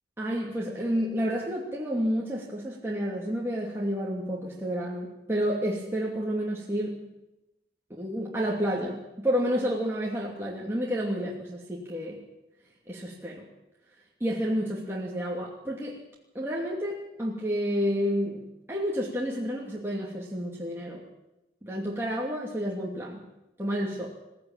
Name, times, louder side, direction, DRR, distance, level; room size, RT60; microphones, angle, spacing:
voice 1, 0.2-7.0 7.9-12.2 12.9-13.5 14.2-16.0 16.3-21.0 21.6-23.2 23.6-24.1, equal, 15° right, -4 dB, 2.7 m, -30 dB
22.0 x 14.5 x 9.0 m, 0.96 s
head